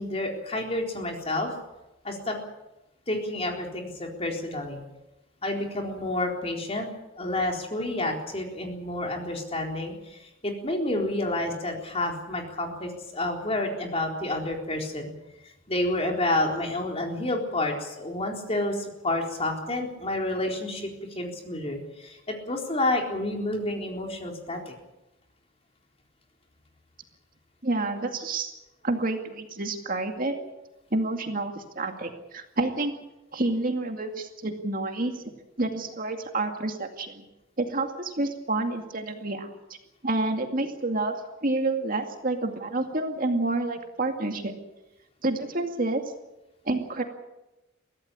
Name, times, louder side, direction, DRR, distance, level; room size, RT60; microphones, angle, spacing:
voice 1, 0.0-1.5 2.0-2.4 3.1-4.8 5.4-6.9 7.2-15.1 15.7-24.7, left 1 dB, 30° left, 1 dB, 4.0 m, -29 dB
voice 2, 27.6-28.5 28.8-30.3 30.9-32.9 33.3-35.2 35.6-37.2 37.6-39.6 40.0-41.1 41.4-44.5 45.2-46.0 46.7-47.0, right 2 dB, 45° right, 4 dB, 2.3 m, -28 dB
23.0 x 16.5 x 8.6 m, 0.97 s
head